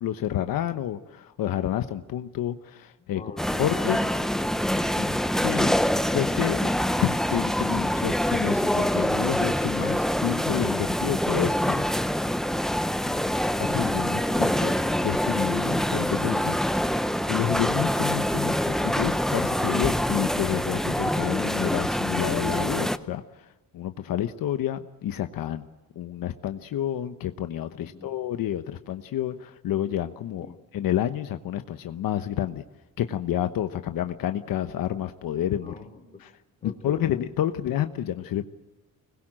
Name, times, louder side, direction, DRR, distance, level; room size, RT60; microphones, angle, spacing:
voice 1, 0.0-3.2 3.6-4.0 5.0-5.8 6.1-6.7 7.0-11.9 13.7-14.7 15.0-16.6 17.3-23.5 23.7-25.7 25.9-30.5 30.7-32.6 33.0-35.7 36.2-36.3 36.6-38.5, left 11 dB, 75° left, 8 dB, 1.1 m, -29 dB
voice 2, 3.0-4.7 14.1-15.0 27.7-28.1 30.4-30.6 35.6-36.3 36.6-37.1, left 3 dB, 20° left, 4 dB, 3.2 m, -43 dB
sound 1, 3.4-23.0, equal, ahead, 0.7 m, -25 dB
25.0 x 21.0 x 7.7 m, 1.1 s
cardioid pair, 120°, 34 cm